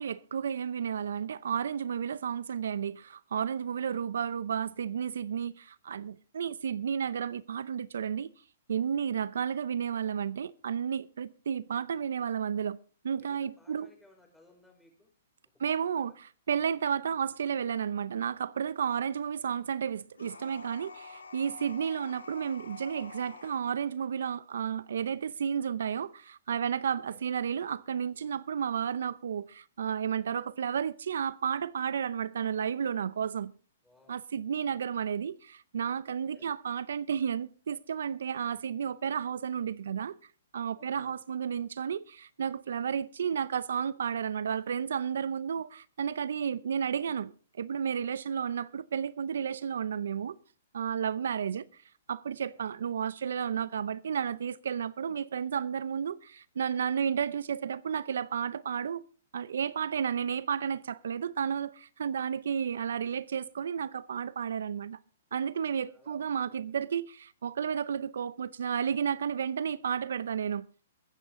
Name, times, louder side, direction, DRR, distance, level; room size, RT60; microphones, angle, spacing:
voice 1, 0.0-8.3 8.7-12.8 13.0-13.9 15.6-33.5 34.1-40.1 40.5-50.4 50.7-51.8 52.1-59.0 59.3-65.0 65.3-70.9, right 7 dB, 75° right, 0.6 m, -32 dB
voice 2, 8.9-9.3 13.2-15.1 15.6-16.0 27.1-27.3 33.8-34.2 36.1-36.5 40.7-41.1 50.9-51.2 52.4-52.6 65.8-66.6, left 2 dB, 5° left, 5.0 m, -62 dB
sound 1, 20.1-23.6, left 4 dB, 90° left, 2.7 m, -48 dB
22.5 x 9.2 x 3.7 m
hypercardioid pair, 130°, 0 cm